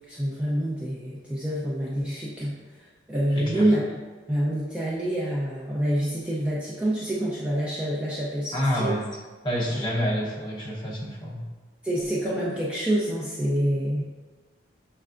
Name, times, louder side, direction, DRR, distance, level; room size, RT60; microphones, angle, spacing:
voice 1, 0.1-3.9 4.3-8.9 9.8-9.9 11.8-14.0, right 1 dB, 5° right, -7 dB, 0.4 m, -27 dB
voice 2, 3.3-3.7 8.5-9.0 9.4-11.4, equal, 25° left, -5 dB, 0.8 m, -28 dB
6.4 x 3.3 x 2.4 m, 1.4 s
head